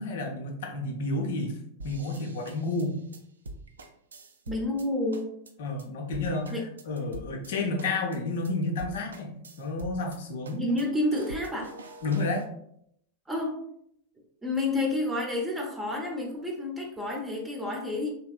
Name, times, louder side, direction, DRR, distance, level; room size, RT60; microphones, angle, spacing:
voice 1, 0.0-3.0 5.6-10.6 12.0-12.4, left 2 dB, 55° left, 2 dB, 0.6 m, -31 dB
sound 1, 1.8-4.9 5.1-5.5 5.8-5.9 6.1-7.5 7.8-8.2 8.4-8.5 8.8-10.2 10.4-12.5, right 2 dB, 70° right, 0.3 m, -44 dB
voice 2, 4.5-5.3 6.5-6.6 10.5-11.7 13.3-13.5 14.4-18.1, left 2 dB, 10° right, 0 dB, 0.6 m, -29 dB
3.4 x 2.8 x 2.3 m, 0.72 s
figure-of-eight pair, 90°, 0 cm